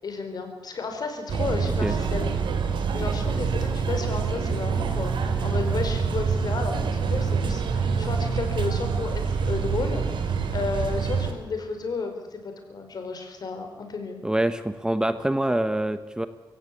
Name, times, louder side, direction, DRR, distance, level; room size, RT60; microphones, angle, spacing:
voice 1, 0.0-2.3 2.9-14.2, left 4 dB, 55° left, 6 dB, 4.7 m, -33 dB
sound 1, 1.3-11.3, right 5 dB, 90° right, 2.9 m, -26 dB
voice 2, 14.2-16.3, right 1 dB, 10° right, 11 dB, 1.0 m, -25 dB
23.0 x 17.0 x 8.6 m, 1.3 s
wide cardioid pair, 120°, 8 cm